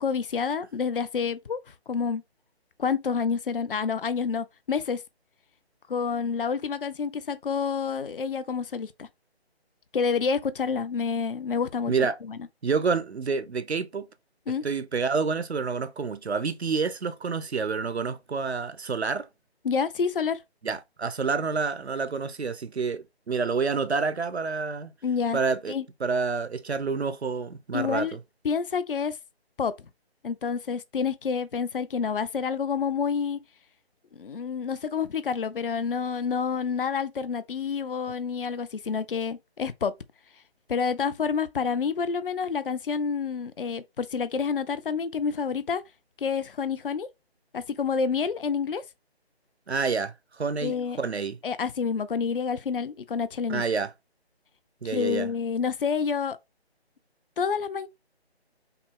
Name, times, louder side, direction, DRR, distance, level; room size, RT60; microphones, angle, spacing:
voice 1, 0.0-2.2 2.8-5.0 5.9-9.1 9.9-11.9 12.3-12.4 14.5-14.6 19.6-20.4 25.0-25.4 25.7-25.8 27.7-28.2 28.4-29.2 29.6-29.7 30.2-33.4 34.1-39.9 40.7-45.8 46.2-47.1 47.5-48.8 50.6-51.0 51.4-53.6 54.8-56.4 57.4-57.9, left 6 dB, 55° left, 0.5 m, -28 dB
voice 2, 12.6-14.1 14.6-19.3 20.6-24.9 25.3-25.7 26.0-28.2 49.7-51.4 53.5-53.9 54.8-55.3, right 5 dB, 80° right, 0.7 m, -28 dB
5.7 x 2.0 x 3.7 m
figure-of-eight pair, 155°, 33 cm